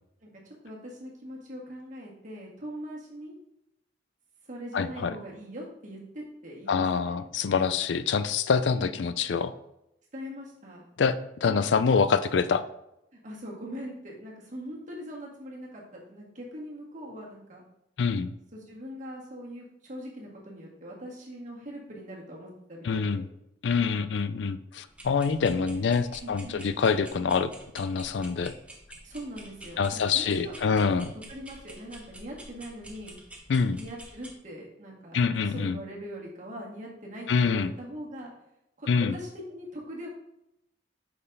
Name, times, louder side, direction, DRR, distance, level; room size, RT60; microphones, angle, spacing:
voice 1, 0.2-3.3 4.5-7.2 8.8-9.0 10.1-10.8 11.4-11.9 13.1-17.6 18.5-23.2 26.2-26.7 29.0-30.7 31.1-33.2 33.8-38.3 38.8-40.1, equal, 45° right, -3 dB, 1.8 m, -42 dB
voice 2, 4.7-5.2 6.7-9.5 11.0-11.1 11.4-12.6 18.0-18.3 22.8-23.3 23.6-28.5 29.8-31.1 33.5-33.8 35.1-35.8 37.3-37.7 38.9-39.2, left 5 dB, 75° left, 13 dB, 0.4 m, -25 dB
sound 1, 24.9-34.3, right 1 dB, 5° right, 1.0 m, -48 dB
5.4 x 4.2 x 5.3 m, 0.85 s
head